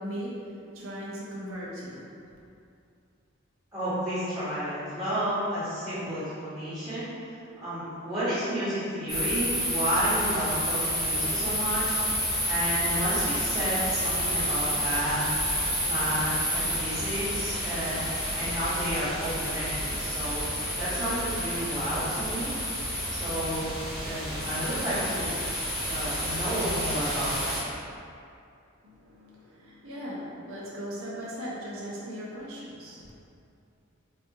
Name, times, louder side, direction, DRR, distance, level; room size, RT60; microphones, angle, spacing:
voice 1, 0.0-2.1 28.8-33.1, equal, 70° right, -6 dB, 0.7 m, -38 dB
voice 2, 3.7-12.0 12.5-15.4 15.8-18.0 18.3-20.4 20.8-22.5 23.1-23.7 24.0-25.3 25.9-27.4, equal, 20° right, -16 dB, 1.2 m, -31 dB
sound 1, 9.1-27.6, equal, ahead, 1.1 m, -30 dB
4.1 x 2.4 x 2.7 m, 2.5 s
head